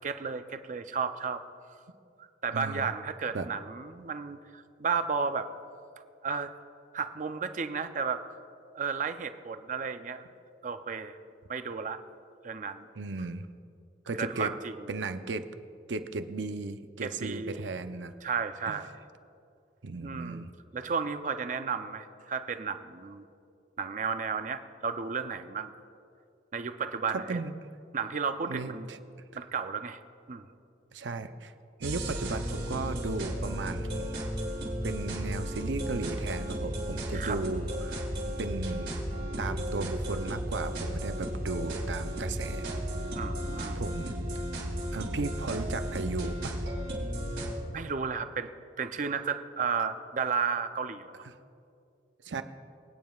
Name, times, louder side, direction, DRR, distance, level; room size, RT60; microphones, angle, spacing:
voice 1, 0.0-1.4 2.2-5.5 6.2-6.5 6.9-8.2 8.7-10.3 10.6-11.2 11.5-12.0 12.4-12.9 14.2-14.8 17.0-17.7 18.2-18.9 20.0-20.4 20.7-23.3 23.8-25.7 26.5-27.4 27.9-28.9 29.3-30.0 30.3-30.5 37.1-37.4 43.1-43.8 47.7-48.5 48.8-51.2, right 5 dB, 45° right, 9 dB, 0.5 m, -33 dB
voice 2, 2.5-2.9 3.3-3.5 13.0-13.5 14.1-14.5 14.9-15.5 15.9-18.1 18.7-18.8 19.8-20.5 27.1-27.5 28.5-29.0 30.9-31.5 31.8-34.2 34.8-38.0 38.4-38.9 39.4-42.7 43.7-44.2 44.9-46.5 51.2-51.4 52.2-52.4, right 3 dB, 85° right, 9 dB, 0.6 m, -35 dB
sound 1, 31.8-47.5, equal, 70° right, 3.1 m, -34 dB
24.5 x 9.3 x 2.4 m, 2.4 s
head